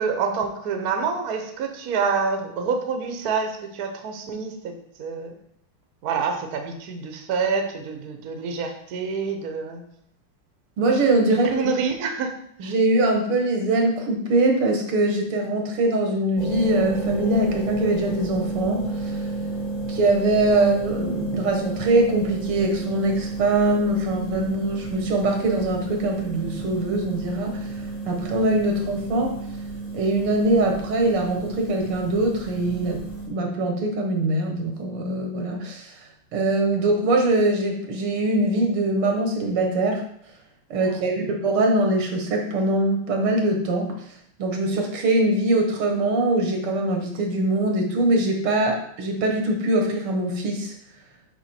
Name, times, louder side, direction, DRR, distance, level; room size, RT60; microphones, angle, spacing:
voice 1, 0.0-4.7 5.0-5.3 6.0-9.8 11.5-12.3 12.6-12.7 40.8-41.0, right 5 dB, 55° right, 5 dB, 1.2 m, -27 dB
voice 2, 10.8-11.7 12.6-19.1 19.9-27.6 28.1-29.4 29.9-33.0 33.3-35.9 36.3-40.0 40.7-43.9 44.4-50.7, right 2 dB, 90° right, 2 dB, 2.3 m, -22 dB
sound 1, 16.4-33.3, right 3 dB, 25° left, 1.6 m, -31 dB
6.0 x 5.5 x 4.4 m, 0.70 s
omnidirectional pair, 2.4 m